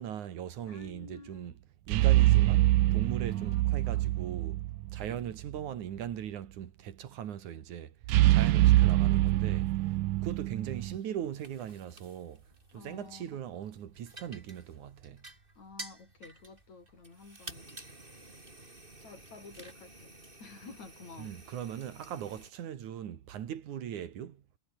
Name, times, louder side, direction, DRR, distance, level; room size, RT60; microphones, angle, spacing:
voice 1, 0.0-1.5 1.9-4.6 4.9-7.9 8.3-9.7 10.2-12.5 12.7-15.3 21.2-24.4, right 10 dB, 75° right, 3.2 m, -39 dB
voice 2, 0.7-1.6 3.2-4.1 8.4-8.9 12.7-13.3 15.6-17.7 19.0-21.4, left 4 dB, 65° left, 7.3 m, -51 dB
sound 1, 1.9-5.2 5.4-5.6 8.1-11.0, right 17 dB, 90° right, 2.2 m, -25 dB
sound 2, 8.9-22.5, right 2 dB, 15° right, 4.5 m, -52 dB
omnidirectional pair, 3.5 m